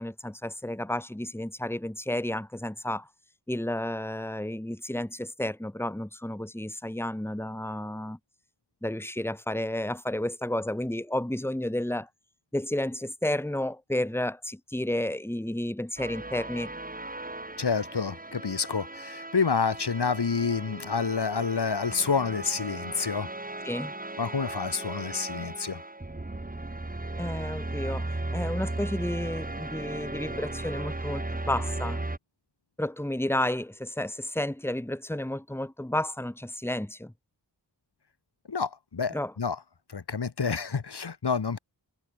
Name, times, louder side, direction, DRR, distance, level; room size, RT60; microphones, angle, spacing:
voice 1, 0.0-3.1 3.5-8.2 8.8-12.1 12.5-16.7 23.6-23.9 27.2-32.0 32.8-37.1 39.1-39.3, left 1 dB, 5° left, 2.1 m, -31 dB
sound 1, 16.0-32.2, right 2 dB, 20° right, 1.9 m, -36 dB
voice 2, 17.6-23.3 24.2-25.8 38.5-39.6 39.9-41.6, left 5 dB, 70° left, 2.1 m, -28 dB
wide cardioid pair, 55°, 41 cm